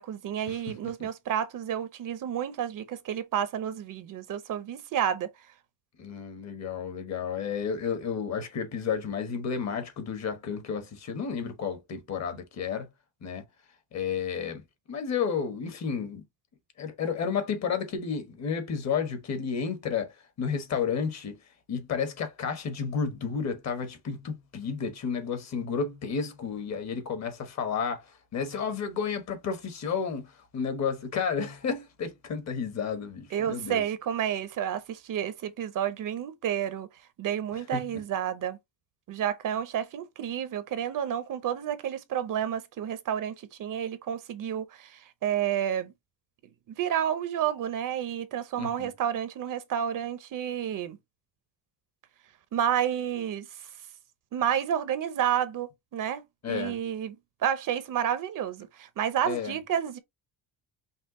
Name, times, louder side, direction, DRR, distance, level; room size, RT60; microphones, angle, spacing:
voice 1, 0.0-5.3 33.3-36.9 37.2-38.6 39.1-45.9 46.8-51.0 52.5-53.5 54.3-57.2 57.4-60.0, right 9 dB, 50° right, 0.7 m, -30 dB
voice 2, 6.0-12.9 13.2-13.4 13.9-14.6 14.9-16.2 16.8-21.4 21.7-33.8 37.5-38.0 48.6-48.9 56.4-56.8 59.2-59.6, left 6 dB, 40° left, 1.2 m, -32 dB
5.5 x 2.3 x 3.6 m
cardioid pair, 170°, 41 cm